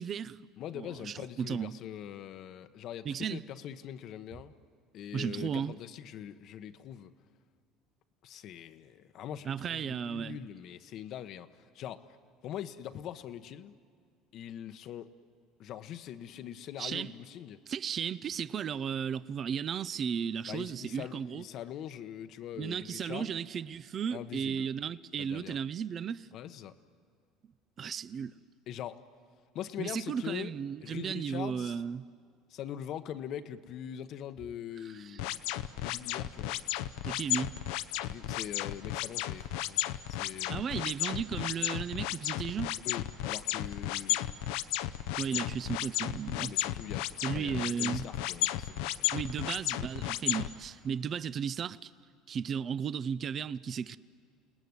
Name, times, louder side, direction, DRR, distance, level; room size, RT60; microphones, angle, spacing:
voice 1, 0.0-0.4 0.7-1.7 3.0-3.4 5.1-5.7 9.4-10.4 16.8-17.1 17.7-21.4 22.6-26.3 27.8-28.3 29.8-32.0 34.8-35.2 37.0-37.6 40.5-42.8 45.2-46.5 47.2-48.1 49.1-51.9 52.3-54.0, right 7 dB, 40° right, 0.6 m, -35 dB
voice 2, 0.6-4.5 4.9-7.1 8.2-12.2 12.4-13.7 14.3-15.1 15.6-17.6 20.5-23.4 24.1-24.7 25.2-25.6 26.3-26.7 28.7-29.0 29.5-30.5 30.8-31.8 32.5-35.4 35.8-36.6 38.0-40.7 42.8-44.2 45.3-45.5 46.4-47.1 47.3-49.1, left 10 dB, 55° left, 1.0 m, -42 dB
sound 1, 35.2-50.5, left 15 dB, 80° left, 0.8 m, -33 dB
29.5 x 18.5 x 9.6 m
supercardioid pair, 105°, 0 cm